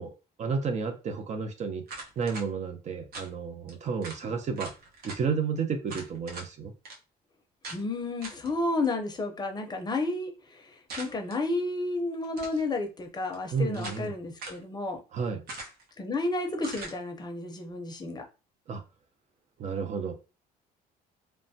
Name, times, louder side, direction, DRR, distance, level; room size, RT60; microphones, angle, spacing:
voice 1, 0.0-1.8 2.2-4.7 5.0-6.7 13.5-14.1 15.1-15.4 18.7-18.8 19.6-20.1, right 5 dB, 45° right, 0.5 m, -31 dB
sound 1, 1.9-2.5 3.1-3.3 3.7-3.8 4.0-4.2 4.6-5.2 5.9-6.5 6.8-7.0 7.6-7.8 8.2-8.5 10.9-11.4 12.2-12.6 13.3-14.1 14.4-14.6 15.5-15.9 16.6-17.0, right 2 dB, 65° right, 0.9 m, -41 dB
voice 2, 7.7-15.0 16.0-18.3, left 2 dB, 25° left, 0.6 m, -31 dB
3.2 x 2.1 x 2.7 m
cardioid pair, 110°, 17 cm